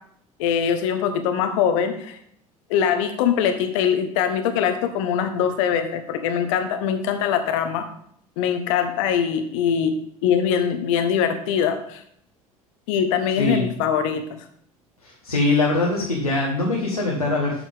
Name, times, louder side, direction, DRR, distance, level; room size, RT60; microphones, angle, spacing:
voice 1, 0.4-2.2 2.7-7.9 8.4-9.9 10.2-12.0 12.9-14.2, left 8 dB, 60° left, 8 dB, 1.1 m, -22 dB
voice 2, 15.0-17.6, left 2 dB, 90° left, -3 dB, 1.3 m, -22 dB
8.5 x 7.0 x 3.5 m, 0.67 s
figure-of-eight pair, 65°, 18 cm